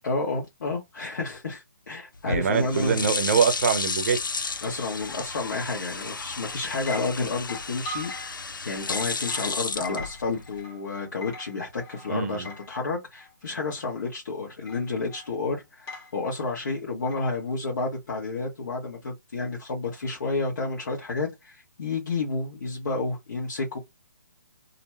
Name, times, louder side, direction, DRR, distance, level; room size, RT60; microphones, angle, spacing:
voice 1, 0.0-3.1 4.6-8.1 8.6-23.8, left 3 dB, 65° left, 1.0 m, -30 dB
sound 1, 2.1-10.6, left 4 dB, 90° left, 0.5 m, -33 dB
voice 2, 2.3-4.2 12.1-12.5, right 6 dB, 45° right, 0.6 m, -24 dB
sound 2, 6.3-6.4 6.8-12.7 13.2-13.3 14.7-15.3 15.9-16.2 17.1-17.3, left 1 dB, 20° left, 0.9 m, -41 dB
2.5 x 2.1 x 3.2 m
figure-of-eight pair, 145°, 11 cm